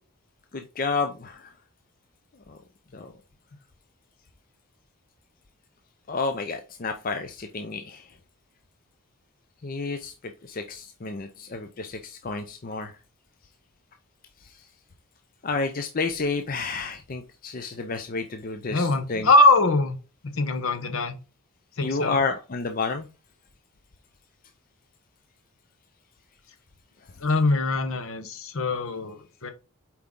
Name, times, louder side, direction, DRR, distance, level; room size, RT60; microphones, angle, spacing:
voice 1, 0.5-1.5 2.5-2.6 2.9-3.1 6.1-8.0 9.6-10.1 10.4-12.9 15.4-19.3 21.8-23.1, left 4 dB, 40° left, 0.5 m, -30 dB
voice 2, 18.7-20.0 20.2-21.2 21.8-22.2 27.2-29.5, left 2 dB, 65° left, 0.9 m, -22 dB
7.6 x 4.6 x 3.6 m
head